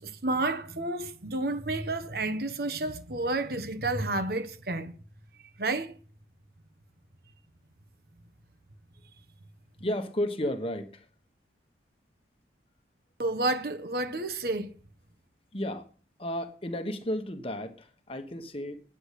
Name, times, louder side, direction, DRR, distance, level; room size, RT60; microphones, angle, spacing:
voice 1, 0.0-4.9 5.6-6.0 13.2-14.7, right 2 dB, 55° right, 1.1 m, -30 dB
voice 2, 9.8-11.1 15.5-15.9 16.2-18.8, left 1 dB, 30° left, 1.3 m, -33 dB
9.9 x 8.7 x 8.3 m
head